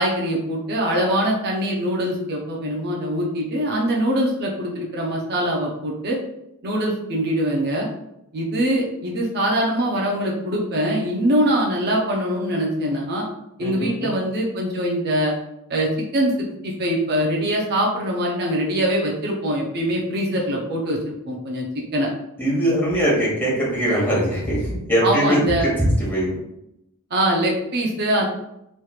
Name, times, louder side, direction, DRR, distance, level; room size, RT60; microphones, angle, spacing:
voice 1, 0.0-6.2 6.6-7.9 8.3-13.2 13.6-15.3 15.7-16.3 16.6-21.7 21.9-22.1 25.0-25.7 27.1-28.3, right 1 dB, 50° right, -2 dB, 0.6 m, -23 dB
voice 2, 13.6-14.1 22.4-26.4, right 1 dB, 10° left, -7 dB, 1.4 m, -21 dB
3.2 x 3.0 x 2.3 m, 0.83 s
head